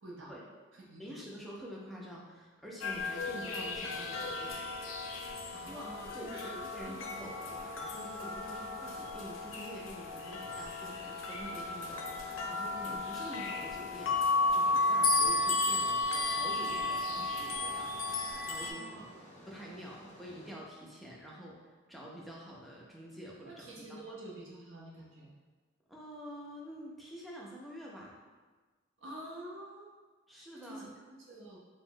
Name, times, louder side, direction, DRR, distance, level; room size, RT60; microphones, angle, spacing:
voice 1, 0.0-0.4 0.7-1.3 5.5-7.0 18.6-19.1 23.4-25.3 29.0-29.9 30.3-31.6, right 1 dB, 70° right, -3 dB, 0.6 m, -48 dB
voice 2, 1.0-4.6 5.7-5.8 6.1-18.9 19.5-24.0 25.9-28.2 30.3-30.9, equal, ahead, -5 dB, 0.4 m, -47 dB
sound 1, 2.8-18.7, left 2 dB, 80° left, 0.4 m, -34 dB
sound 2, 11.7-20.5, equal, 35° left, 0.7 m, -54 dB
2.9 x 2.0 x 3.6 m, 1.3 s
head